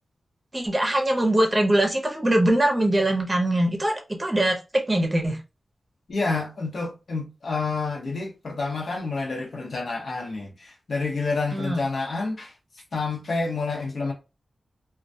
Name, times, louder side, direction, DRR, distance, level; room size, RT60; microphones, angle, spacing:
voice 1, 0.5-5.4 11.5-11.8, right 1 dB, 20° right, 0.6 m, -22 dB
voice 2, 6.1-12.5 12.9-14.1, left 3 dB, 70° left, 0.8 m, -28 dB
2.2 x 2.2 x 2.5 m
wide cardioid pair, 115°, 0 cm